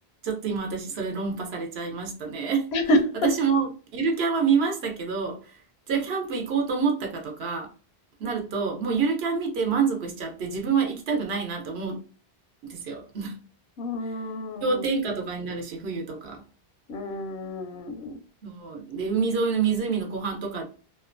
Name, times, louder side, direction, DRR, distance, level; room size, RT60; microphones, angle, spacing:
voice 1, 0.2-2.7 3.2-5.6 5.9-7.7 8.2-12.0 12.6-13.3 14.6-16.4 18.4-20.6, right 5 dB, 80° right, 2 dB, 1.0 m, -27 dB
voice 2, 2.7-3.3 13.8-14.8 16.9-18.2, equal, 85° left, 6 dB, 0.8 m, -27 dB
2.8 x 2.1 x 2.5 m, 0.37 s
omnidirectional pair, 1.1 m